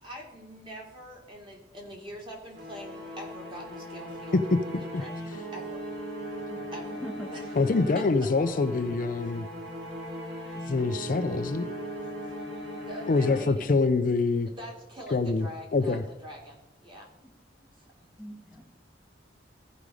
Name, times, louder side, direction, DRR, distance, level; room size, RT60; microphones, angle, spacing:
voice 1, 0.0-4.4 4.8-5.1 5.5-5.8 6.7-7.0 7.3-7.4 7.9-8.0 12.0-12.4 12.9-13.7 14.5-17.1 17.8-17.9, equal, 25° right, 0 dB, 2.2 m, -44 dB
sound 1, 2.5-14.0, equal, 60° right, 3.6 m, -38 dB
voice 2, 7.6-9.5 10.7-11.7 13.1-14.5 15.1-16.0, left 3 dB, 45° left, 9 dB, 0.5 m, -25 dB
voice 3, 17.2-17.7 18.2-18.6, equal, 5° right, 1 dB, 1.7 m, -43 dB
15.0 x 5.1 x 4.8 m, 0.93 s
head